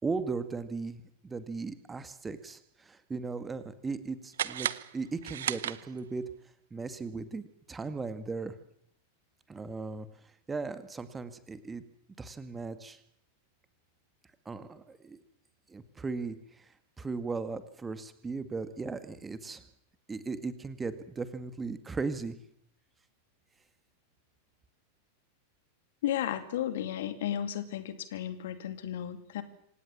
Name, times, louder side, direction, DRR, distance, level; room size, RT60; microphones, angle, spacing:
voice 1, 0.0-4.7 4.9-6.2 6.7-8.5 9.5-10.1 10.5-11.8 12.2-13.0 14.5-15.2 15.7-16.7 17.0-19.6 20.1-22.4, right 4 dB, 15° right, 11 dB, 1.9 m, -37 dB
sound 1, 4.3-6.3, right 10 dB, 60° right, 0.9 m, -35 dB
voice 2, 26.0-29.4, left 11 dB, 55° left, 11 dB, 2.6 m, -34 dB
26.5 x 18.0 x 7.3 m, 0.68 s
figure-of-eight pair, 90°, 0 cm